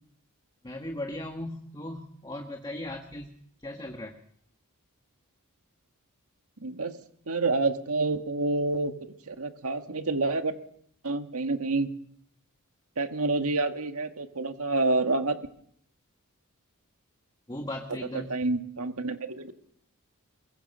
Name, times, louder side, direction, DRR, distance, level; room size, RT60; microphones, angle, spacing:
voice 1, 0.6-3.3 3.6-4.2 17.5-18.3, left 1 dB, 20° left, 3 dB, 1.6 m, -37 dB
voice 2, 6.6-7.0 7.3-8.9 9.3-10.5 11.0-11.9 13.0-15.4 18.3-19.5, right 2 dB, 75° right, 7 dB, 1.8 m, -28 dB
22.5 x 21.5 x 5.6 m, 0.66 s
head